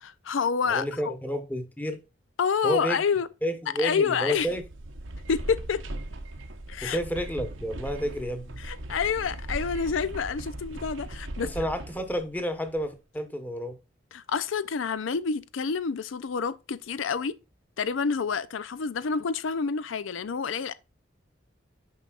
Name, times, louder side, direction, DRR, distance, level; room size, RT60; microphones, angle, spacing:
voice 1, 0.0-1.1 2.4-3.3 3.8-4.5 5.3-5.8 6.7-7.0 8.6-11.5 14.1-17.4 17.8-20.7, left 6 dB, 80° left, 0.5 m, -28 dB
voice 2, 0.7-2.0 2.6-3.0 3.4-4.6 6.8-8.6 11.4-13.8, equal, 10° left, 1.1 m, -30 dB
sound 1, 4.3-12.9, right 1 dB, 90° right, 1.1 m, -39 dB
9.5 x 5.5 x 2.4 m
head